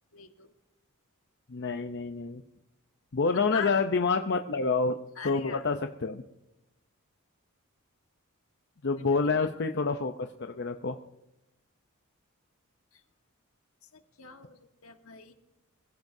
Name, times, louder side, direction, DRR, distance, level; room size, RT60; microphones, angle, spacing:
voice 1, 0.1-0.5 3.5-3.8 5.1-5.6 9.0-9.7 12.9-13.0 13.8-15.3, left 5 dB, 70° left, 5 dB, 1.5 m, -43 dB
voice 2, 1.5-2.4 3.1-5.0 5.2-6.2 8.8-11.0, left 4 dB, 55° left, 6 dB, 0.7 m, -28 dB
25.5 x 16.0 x 2.7 m, 0.91 s
head